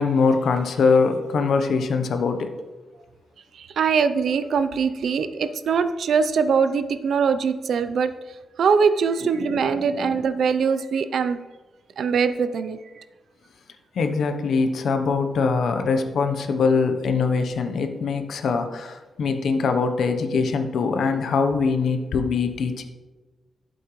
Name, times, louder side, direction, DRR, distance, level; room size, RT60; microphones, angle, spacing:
voice 1, 0.0-2.5 9.4-10.1 13.9-22.8, left 4 dB, 70° left, 7 dB, 0.9 m, -23 dB
voice 2, 3.6-8.1 8.6-11.4 12.0-12.8, right 6 dB, 70° right, 11 dB, 0.5 m, -22 dB
12.0 x 7.8 x 3.1 m, 1.2 s
wide cardioid pair, 155°, 0 cm